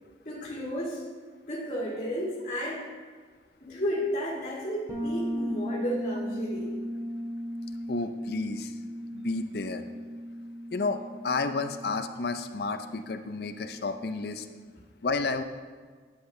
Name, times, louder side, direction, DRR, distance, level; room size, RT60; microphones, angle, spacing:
voice 1, 0.2-1.0 1.4-2.9 3.6-6.7 14.7-14.8, equal, 40° left, -5 dB, 1.7 m, -33 dB
Bass guitar, 4.9-14.6, equal, 15° right, 1.9 m, -37 dB
voice 2, 7.9-8.7 9.1-9.8 10.7-14.5 15.0-15.4, left 3 dB, 55° left, 9 dB, 0.5 m, -31 dB
10.0 x 8.1 x 3.2 m, 1.5 s
head